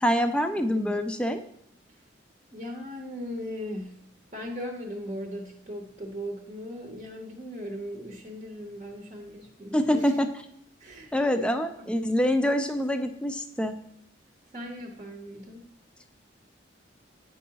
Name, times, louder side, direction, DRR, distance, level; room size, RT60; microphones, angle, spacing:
voice 1, 0.0-1.4 9.7-10.3 11.1-13.8, equal, 5° left, 7 dB, 0.3 m, -25 dB
voice 2, 0.5-1.0 2.5-4.0 4.3-10.1 10.8-11.9 14.5-15.6, equal, 40° right, 0 dB, 0.7 m, -38 dB
9.1 x 4.6 x 2.8 m, 0.70 s
head